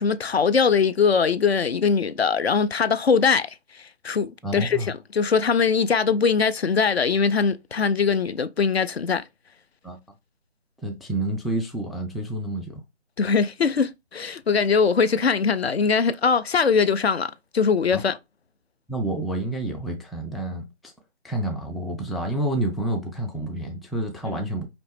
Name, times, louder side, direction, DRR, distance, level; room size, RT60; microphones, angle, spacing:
voice 1, 0.0-3.5 3.8-9.2 13.2-18.2 24.3-24.4, left 5 dB, 60° left, 0.5 m, -21 dB
voice 2, 4.4-4.9 9.8-10.0 10.8-12.8 17.9-18.0 18.9-20.7 21.2-24.7, right 1 dB, ahead, 0.3 m, -29 dB
5.1 x 2.9 x 3.2 m
hypercardioid pair, 175°, 35 cm